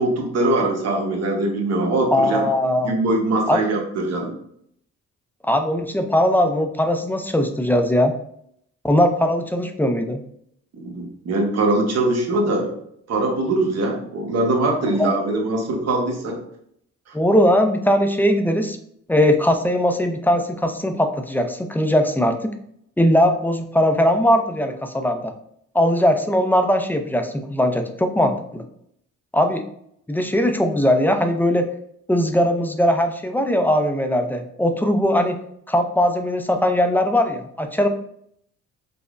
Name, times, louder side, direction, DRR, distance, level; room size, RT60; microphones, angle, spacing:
voice 1, 0.0-2.5 2.8-4.3 10.8-12.8 13.1-16.4 17.1-17.2, right 2 dB, 55° right, 1 dB, 1.0 m, -22 dB
voice 2, 2.1-2.9 3.5-3.6 5.4-8.1 8.8-10.2 15.0-15.1 17.1-18.8 19.1-22.4 23.0-25.3 25.7-28.6 29.3-29.6 30.1-31.7 32.1-35.4 35.7-37.9, left 1 dB, 5° left, 6 dB, 0.3 m, -19 dB
5.1 x 2.0 x 2.4 m, 0.70 s
cardioid pair, 90°, 30 cm